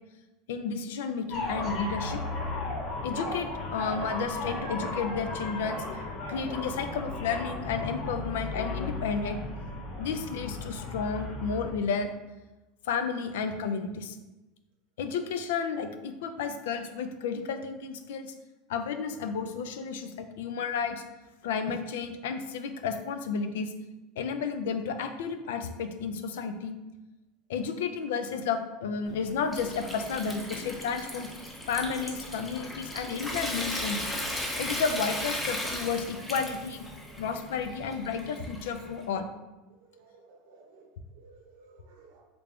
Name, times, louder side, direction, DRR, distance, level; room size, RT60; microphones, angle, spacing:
voice 1, 0.5-2.2 3.0-5.8 6.3-9.4 10.0-12.1 12.8-14.2 15.0-18.3 18.7-21.0 21.4-23.7 24.2-26.8 27.5-31.3 31.7-34.0 34.6-36.8 37.2-39.2, left 5 dB, 90° left, 8 dB, 0.3 m, -32 dB
sound 1, 1.3-11.7, left 2 dB, 45° left, 0.7 m, -35 dB
Water tap faucet / Sink (filling or washing) / Trickle dribble, 29.1-39.0, left 1 dB, 10° left, 0.5 m, -37 dB
voice 2, 39.7-42.2, right 4 dB, 75° right, 2 dB, 0.6 m, -57 dB
3.3 x 2.4 x 3.4 m, 1.1 s
supercardioid pair, 135°, 0 cm